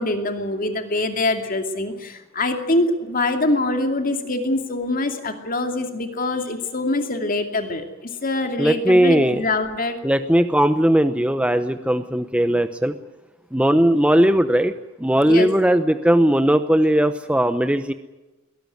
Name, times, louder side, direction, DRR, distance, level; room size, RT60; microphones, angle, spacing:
voice 1, 0.0-10.0 15.3-15.5, left 2 dB, 45° left, 6 dB, 2.6 m, -24 dB
voice 2, 8.6-9.4 10.0-12.9 13.5-14.7 15.0-17.9, right 1 dB, 5° right, 9 dB, 0.8 m, -18 dB
22.5 x 18.0 x 9.3 m, 1.1 s
head